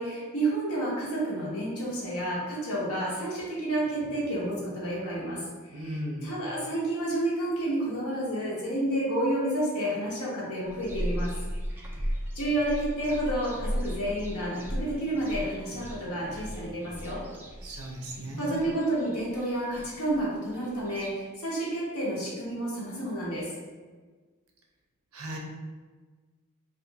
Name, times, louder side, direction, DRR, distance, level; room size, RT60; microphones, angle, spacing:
voice 1, 0.0-11.3 12.0-12.1 12.3-17.2 18.4-23.5, right 1 dB, 80° left, -5 dB, 1.0 m, -30 dB
voice 2, 5.7-6.4 17.6-18.6 25.1-25.4, equal, 70° right, 0 dB, 0.6 m, -37 dB
sound 1, 10.7-21.1, equal, 10° right, 0.4 m, -36 dB
2.5 x 2.5 x 3.9 m, 1.4 s
head